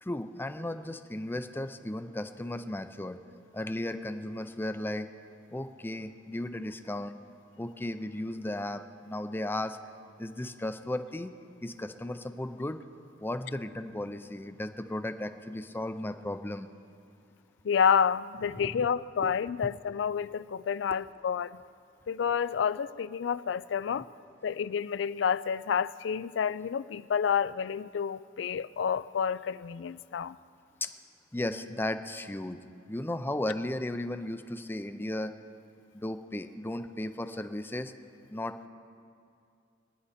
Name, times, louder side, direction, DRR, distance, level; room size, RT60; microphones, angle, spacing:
voice 1, 0.0-3.2 3.5-5.1 5.5-7.2 7.6-9.8 10.2-11.3 11.6-12.8 13.2-16.7 18.5-18.8 19.2-19.3 30.8-30.9 31.3-35.3 35.9-37.9 38.3-38.7, left 1 dB, 10° left, 0.5 m, -35 dB
voice 2, 17.6-21.6 22.1-24.1 24.4-30.4, left 7 dB, 75° left, 0.4 m, -29 dB
23.0 x 10.0 x 4.2 m
head